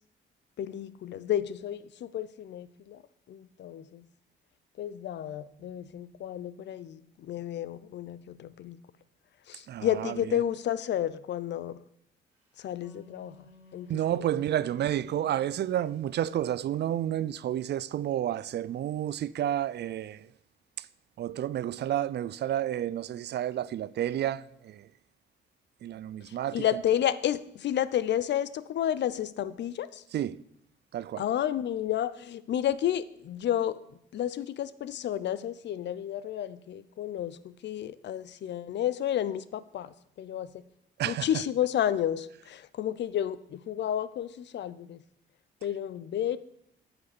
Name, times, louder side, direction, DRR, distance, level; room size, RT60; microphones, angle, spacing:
voice 1, 0.6-3.0 3.3-4.1 4.8-8.8 9.5-11.8 12.6-14.3 26.3-30.0 31.2-33.8 34.1-40.6 41.0-45.0 45.6-46.4, left 10 dB, 60° left, 0.6 m, -31 dB
voice 2, 9.7-10.1 13.9-20.3 20.8-20.9 21.2-24.9 25.8-26.6 30.1-30.4 30.9-31.2 41.0-41.3, right 11 dB, 60° right, 0.5 m, -30 dB
Wind instrument woodwind instrument, 12.5-16.7, left 4 dB, 10° right, 3.3 m, -55 dB
9.4 x 6.0 x 6.7 m
cardioid pair, 90°, 20 cm